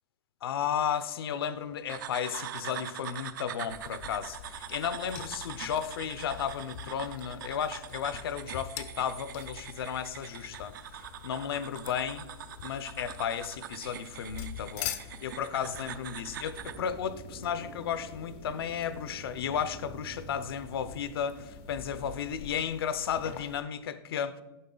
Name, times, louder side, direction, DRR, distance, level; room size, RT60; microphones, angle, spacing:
voice 1, 0.4-10.7 11.2-12.2 12.6-15.0 15.2-24.4, left 8 dB, 80° left, 0.7 m, -34 dB
sound 1, 1.9-16.8, right 10 dB, 55° right, 0.5 m, -43 dB
sound 2, 3.7-23.6, left 10 dB, 30° left, 0.5 m, -46 dB
sound 3, 16.6-22.7, right 4 dB, 40° right, 0.9 m, -49 dB
9.5 x 6.6 x 3.9 m
supercardioid pair, 175°, 12 cm